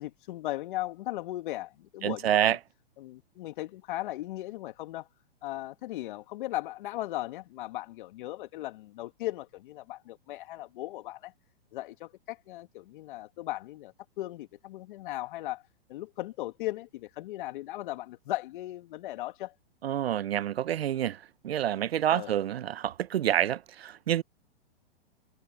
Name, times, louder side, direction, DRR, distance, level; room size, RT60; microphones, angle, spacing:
voice 1, 0.0-2.6 3.0-5.1 5.4-11.3 11.7-15.6 15.9-19.5 22.1-22.3, left 16 dB, 55° left, 1.9 m, -37 dB
voice 2, 2.0-2.6 19.8-24.2, right 11 dB, 75° right, 0.7 m, -28 dB
hypercardioid pair, 120°, 31 cm